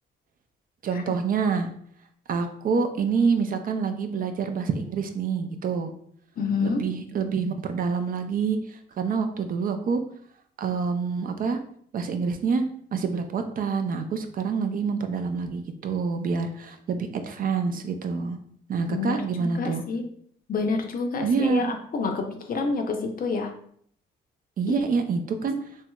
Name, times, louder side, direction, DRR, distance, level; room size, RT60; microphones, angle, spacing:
voice 1, 0.8-1.7 2.3-5.9 6.6-10.0 10.6-11.6 11.9-12.6 12.9-18.4 18.7-19.8 21.2-21.7 24.6-25.6, right 5 dB, 45° right, 7 dB, 0.4 m, -27 dB
voice 2, 6.4-6.8 18.9-20.0 20.5-23.5 24.7-24.8, left 4 dB, 45° left, 4 dB, 0.5 m, -28 dB
3.1 x 2.8 x 2.2 m, 0.63 s
cardioid pair, 90°, 20 cm